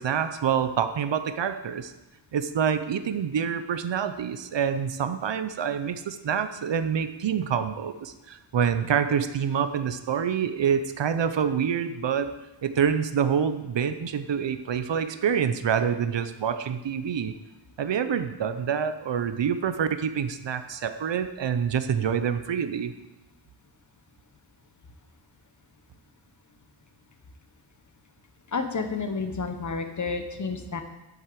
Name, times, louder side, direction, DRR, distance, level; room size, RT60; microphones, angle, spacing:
voice 1, 0.0-1.9 2.3-12.3 12.6-17.3 17.8-22.9, right 7 dB, 65° right, 10 dB, 0.8 m, -26 dB
voice 2, 28.5-30.8, left 4 dB, 40° left, 7 dB, 1.0 m, -30 dB
8.1 x 7.4 x 7.6 m, 0.99 s
wide cardioid pair, 160°, 47 cm